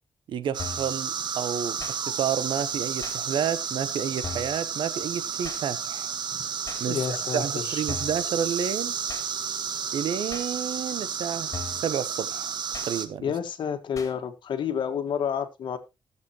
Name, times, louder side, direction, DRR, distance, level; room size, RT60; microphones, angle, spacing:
voice 1, 0.3-6.1 6.8-9.0 9.9-12.5 12.9-13.3, right 8 dB, 90° right, 1.0 m, -30 dB
sound 1, 0.5-13.1, right 7 dB, 65° right, 1.3 m, -32 dB
sound 2, 0.6-0.9 1.8-2.0 3.0-3.2 4.2-4.6 5.4-5.6 6.7-6.8 7.9-8.2 9.1-9.3 10.3-10.5 11.5-11.9 12.7-12.9 13.9-14.1, left 5 dB, 40° left, 2.9 m, -38 dB
voice 2, 6.9-7.8 13.2-15.8, left 7 dB, 75° left, 1.6 m, -29 dB
18.5 x 7.2 x 3.0 m
cardioid pair, 120°, 8 cm